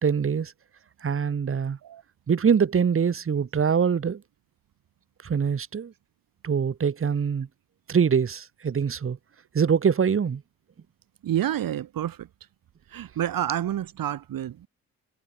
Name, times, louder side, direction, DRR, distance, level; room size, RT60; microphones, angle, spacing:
voice 1, 0.0-0.5 1.0-1.8 2.3-4.2 5.2-5.9 6.4-7.5 7.9-9.2 9.5-10.4, right 6 dB, 35° right, 1.1 m, -24 dB
voice 2, 11.2-12.3 12.9-14.7, right 11 dB, 65° right, 1.5 m, -29 dB
supercardioid pair, 55°, 36 cm